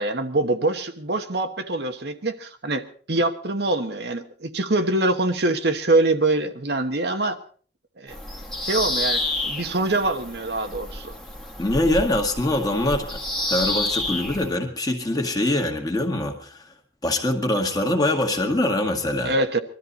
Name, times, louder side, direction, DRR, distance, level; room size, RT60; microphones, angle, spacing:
voice 1, 0.0-7.4 8.0-8.2 8.6-11.2 19.2-19.6, right 2 dB, 60° right, 7 dB, 1.2 m, -24 dB
Bird vocalization bird call bird song, 8.1-14.5, left 2 dB, 5° left, 1.5 m, -29 dB
voice 2, 11.6-13.2 13.5-16.6 17.0-19.3, left 1 dB, 20° left, 3 dB, 1.9 m, -23 dB
22.0 x 13.5 x 4.1 m, 0.43 s
head